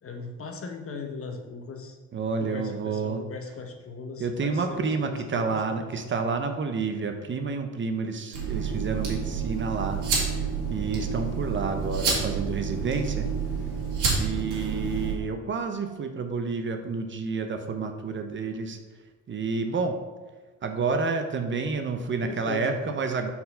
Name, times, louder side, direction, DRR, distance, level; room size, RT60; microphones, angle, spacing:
voice 1, 0.0-2.0 2.4-6.0 22.2-23.0, left 4 dB, 45° left, 4 dB, 1.0 m, -38 dB
voice 2, 2.1-3.2 4.2-10.0 10.3-13.3 14.2-18.8 19.3-20.0 20.6-23.3, right 4 dB, 40° right, 6 dB, 0.6 m, -29 dB
sound 1, 8.3-15.1, right 5 dB, 90° right, 1.6 m, -29 dB
4.3 x 4.2 x 5.5 m, 1.3 s
cardioid pair, 90°, 30 cm